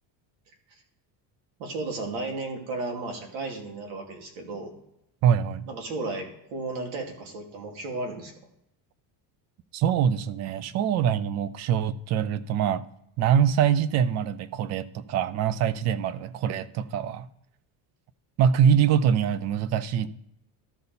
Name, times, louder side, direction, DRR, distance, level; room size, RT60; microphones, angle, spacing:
voice 1, 1.6-4.7 5.6-8.3, right 3 dB, 90° right, 2 dB, 2.6 m, -34 dB
voice 2, 5.2-5.7 9.7-12.8 13.2-17.3 18.4-20.1, right 8 dB, 40° right, 17 dB, 0.4 m, -24 dB
13.0 x 5.5 x 4.1 m, 0.79 s
cardioid pair, 165°, 47 cm